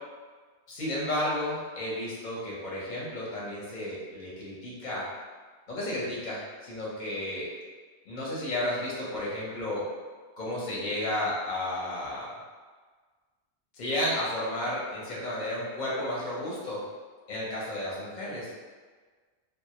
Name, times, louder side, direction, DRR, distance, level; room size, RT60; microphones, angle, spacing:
voice 1, 0.7-5.0 5.7-7.5 8.1-9.8 10.4-12.3 13.7-16.8 17.3-18.5, left 1 dB, 45° left, -6 dB, 0.7 m, -32 dB
2.2 x 2.0 x 2.8 m, 1.5 s
omnidirectional pair, 1.1 m